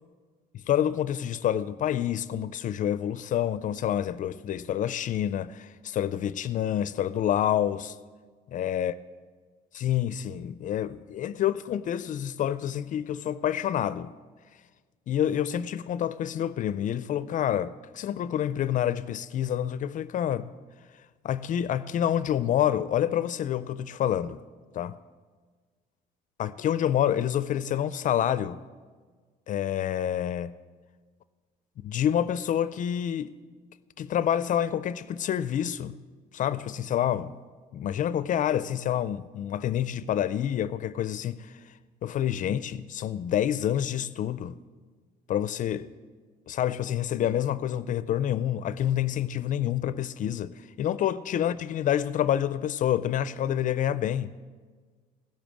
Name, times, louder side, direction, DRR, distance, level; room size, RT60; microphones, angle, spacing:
voice 1, 0.7-8.0 8.5-8.9 9.7-14.1 15.1-20.5 21.2-24.4 24.7-25.0 26.4-28.6 29.5-30.5 31.8-33.4 34.0-36.0 36.3-37.3 37.7-41.6 42.0-44.6 45.3-45.9 46.5-54.3, left 10 dB, 50° left, 0.4 m, -28 dB
16.0 x 7.0 x 7.5 m
cardioid pair, 110°, 17 cm